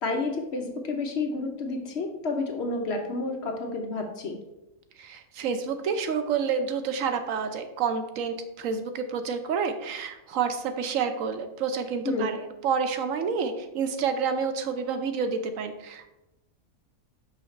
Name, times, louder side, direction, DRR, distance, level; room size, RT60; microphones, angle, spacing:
voice 1, 0.0-4.4 12.0-12.4, left 3 dB, 55° left, 3 dB, 0.9 m, -30 dB
voice 2, 5.0-16.1, right 6 dB, 70° right, 8 dB, 0.9 m, -29 dB
5.6 x 5.6 x 3.1 m, 0.94 s
omnidirectional pair, 1.5 m